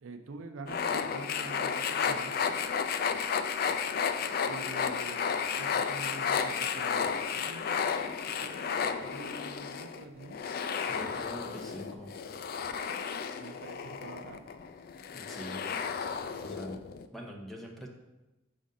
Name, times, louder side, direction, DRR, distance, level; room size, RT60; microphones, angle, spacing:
voice 1, 0.0-2.6 4.5-10.4 13.4-14.4, right 3 dB, 80° right, 6 dB, 0.5 m, -46 dB
sound 1, 0.7-17.0, left 6 dB, 45° left, 0.3 m, -33 dB
voice 2, 10.9-12.1 15.1-15.6 16.4-16.8 17.1-17.9, equal, ahead, -1 dB, 0.7 m, -43 dB
5.1 x 3.8 x 5.3 m, 1.0 s
head